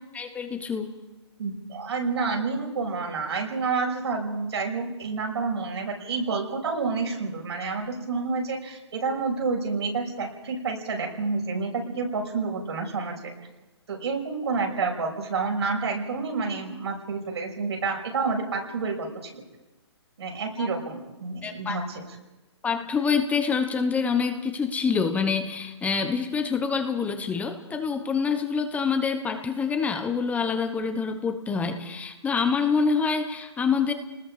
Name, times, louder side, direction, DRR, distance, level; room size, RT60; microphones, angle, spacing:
voice 1, 0.1-0.9 20.6-20.7 21.4-21.8 22.6-33.9, left 5 dB, 10° left, 6 dB, 1.1 m, -26 dB
voice 2, 1.4-13.2 13.9-19.4 20.2-22.0, right 4 dB, 70° right, 1 dB, 6.4 m, -29 dB
29.5 x 20.0 x 5.0 m, 1.1 s
hypercardioid pair, 145°, 15 cm